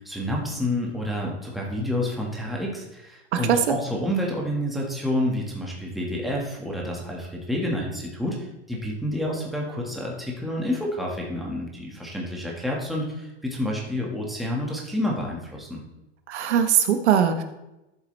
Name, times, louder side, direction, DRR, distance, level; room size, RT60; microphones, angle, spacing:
voice 1, 0.0-8.4 8.7-15.8, left 1 dB, ahead, -2 dB, 1.7 m, -29 dB
voice 2, 3.3-3.6 16.3-17.4, right 8 dB, 75° right, 7 dB, 1.4 m, -21 dB
12.5 x 7.4 x 3.3 m, 0.94 s
supercardioid pair, 130°, 34 cm